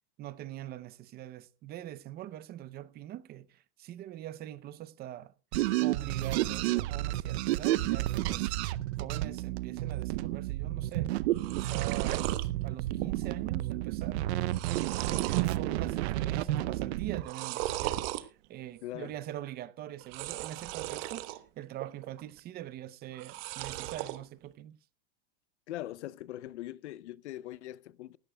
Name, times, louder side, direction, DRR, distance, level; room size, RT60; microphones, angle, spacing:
voice 1, 0.2-5.3 5.8-8.6 9.0-11.1 11.5-14.7 15.1-24.8, right 13 dB, 30° right, 0.6 m, -43 dB
sound 1, 5.5-17.2, right 15 dB, 75° right, 0.7 m, -31 dB
sound 2, 10.9-11.0 11.2-12.5 12.9-13.3 13.6-13.7 14.2-15.5 16.0-16.4 17.2-18.2 20.0-21.4 21.8-22.4 23.1-24.2, right 15 dB, 60° right, 1.2 m, -37 dB
voice 2, 25.7-28.2, left 14 dB, 90° left, 0.7 m, -41 dB
19.0 x 13.5 x 2.3 m
supercardioid pair, 140°, 33 cm